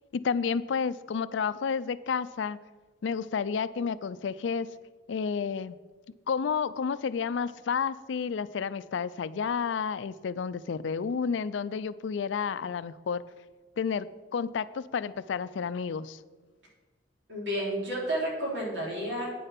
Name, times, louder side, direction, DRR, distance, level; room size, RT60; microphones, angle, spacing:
voice 1, 0.1-2.6 3.0-4.7 5.1-5.8 6.3-13.3 13.8-14.1 14.3-16.2, left 6 dB, 80° left, 16 dB, 0.4 m, -31 dB
voice 2, 17.3-19.3, right 1 dB, 75° right, -3 dB, 3.4 m, -31 dB
9.3 x 6.6 x 5.9 m, 1.3 s
head